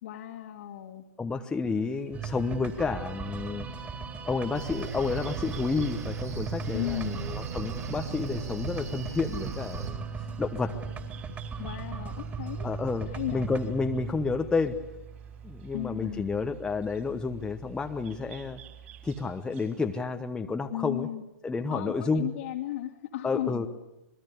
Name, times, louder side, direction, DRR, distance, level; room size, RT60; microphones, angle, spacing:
voice 1, 0.0-1.0 6.7-7.3 11.6-12.7 13.1-13.5 15.7-16.3 20.7-21.2 21.7-23.7, left 13 dB, 50° left, -1 dB, 2.1 m, -35 dB
voice 2, 1.2-3.7 4.3-10.0 10.4-10.7 12.6-14.8 15.4-18.6 19.0-21.1 21.4-22.3 23.2-23.7, left 4 dB, 10° left, 5 dB, 1.1 m, -30 dB
sound 1, 1.6-20.0, right 10 dB, 45° right, 4.7 m, -58 dB
sound 2, 2.1-19.2, right 5 dB, 20° right, 3.5 m, -39 dB
Cricket, 4.5-9.9, right 5 dB, 65° right, 5.1 m, -38 dB
26.5 x 21.0 x 8.3 m, 0.95 s
figure-of-eight pair, 115°, 10 cm